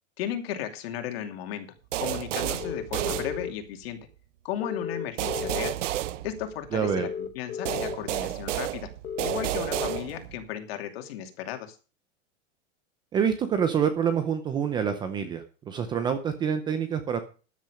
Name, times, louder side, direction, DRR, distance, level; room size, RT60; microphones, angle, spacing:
voice 1, 0.2-1.7 2.0-4.0 4.4-5.8 6.2-8.9 9.2-11.8, left 10 dB, 50° left, 6 dB, 2.7 m, -35 dB
sound 1, 1.9-3.8 5.2-6.9 7.7-10.4, right 14 dB, 70° right, 1.0 m, -31 dB
sound 2, 2.6-3.5 4.6-5.7 6.8-8.0 9.0-10.0, left 7 dB, 15° left, 1.0 m, -34 dB
voice 2, 6.7-7.1 13.1-17.2, right 7 dB, 10° right, 9 dB, 0.6 m, -27 dB
13.5 x 9.0 x 5.1 m, 0.35 s
supercardioid pair, 170°, 38 cm